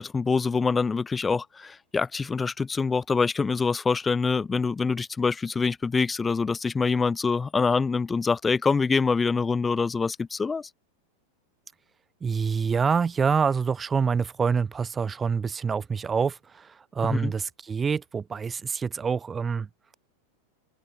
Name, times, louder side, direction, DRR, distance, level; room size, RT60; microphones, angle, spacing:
voice 1, 0.0-10.7 17.1-17.3, left 4 dB, 15° left, 5.9 m, -25 dB
voice 2, 12.2-19.7, right 6 dB, 15° right, 4.5 m, -26 dB
figure-of-eight pair, 90°, 0 cm